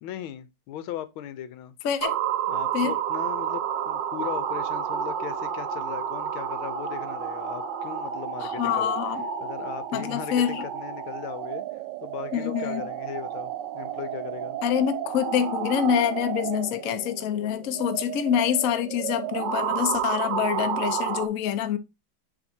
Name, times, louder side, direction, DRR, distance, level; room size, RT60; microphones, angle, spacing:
voice 1, 0.0-1.7 2.5-9.0 9.4-11.6 12.0-14.6, left 11 dB, 90° left, 1.5 m, -38 dB
voice 2, 1.8-2.2 2.7-3.0 8.4-9.2 9.9-10.6 12.3-12.8 14.6-21.8, left 9 dB, 60° left, 0.9 m, -26 dB
sound 1, 2.0-21.3, right 8 dB, 70° right, 1.2 m, -31 dB
9.9 x 3.5 x 2.7 m
omnidirectional pair, 2.2 m